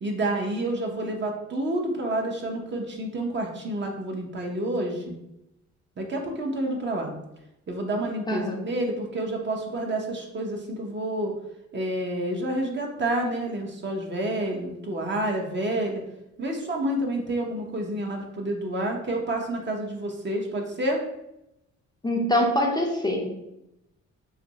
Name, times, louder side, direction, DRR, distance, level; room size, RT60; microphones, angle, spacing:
voice 1, 0.0-5.1 6.0-7.1 7.7-11.3 11.7-16.0 16.4-21.0, right 1 dB, 35° right, 1 dB, 0.8 m, -29 dB
voice 2, 22.0-23.3, left 1 dB, 15° left, -1 dB, 0.5 m, -24 dB
2.6 x 2.5 x 4.0 m, 0.86 s
cardioid pair, 90°, 30 cm